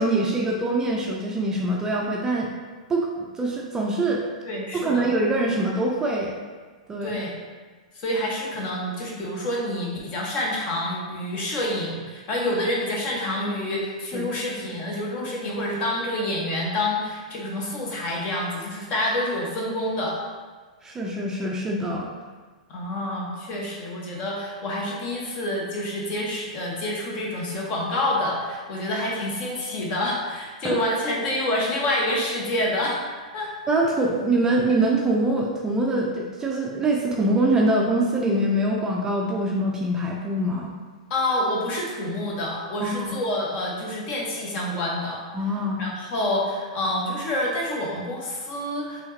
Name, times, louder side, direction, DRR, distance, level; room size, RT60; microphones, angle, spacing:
voice 1, 0.0-2.5 2.9-4.2 4.7-6.4 6.9-7.2 14.1-14.3 20.8-22.1 30.6-30.8 33.7-40.7 42.8-43.2 45.3-45.8, right 1 dB, 15° right, -2 dB, 0.6 m, -24 dB
voice 2, 4.4-5.1 7.0-7.4 7.9-20.2 22.7-33.0 33.3-33.5 41.1-45.2 45.8-49.0, left 1 dB, 40° left, -3 dB, 1.3 m, -27 dB
5.5 x 3.1 x 2.8 m, 1.4 s
figure-of-eight pair, 105°, 4 cm